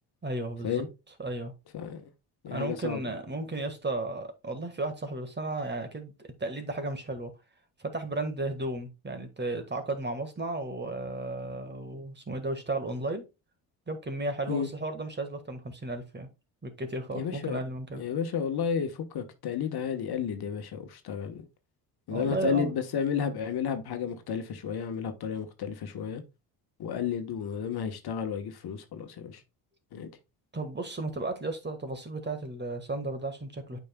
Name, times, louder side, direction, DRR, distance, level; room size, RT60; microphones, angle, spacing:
voice 1, 0.2-0.9 1.2-1.5 2.5-7.3 7.8-13.2 13.9-16.3 16.6-18.0 22.1-22.7 30.5-33.8, right 2 dB, 25° right, 1.7 m, -34 dB
voice 2, 1.7-2.0 2.4-3.0 14.5-14.7 17.1-17.6 18.0-21.5 22.1-26.2 26.8-29.4 29.9-30.1, left 7 dB, 60° left, 1.3 m, -32 dB
8.6 x 5.3 x 2.3 m
supercardioid pair, 65°, 44 cm